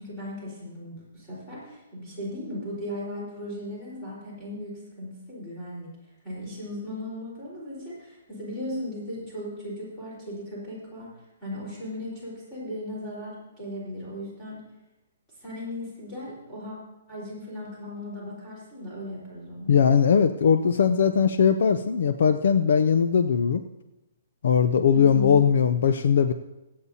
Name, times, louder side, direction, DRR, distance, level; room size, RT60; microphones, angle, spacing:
voice 1, 0.0-5.9 6.2-11.1 11.4-14.6 15.4-16.8 17.1-19.7 24.9-25.4, left 1 dB, 10° left, -8 dB, 4.1 m, -37 dB
voice 2, 19.7-23.6 24.4-26.3, left 7 dB, 55° left, 9 dB, 0.5 m, -20 dB
22.5 x 8.4 x 2.8 m, 0.99 s
hypercardioid pair, 175°, 0 cm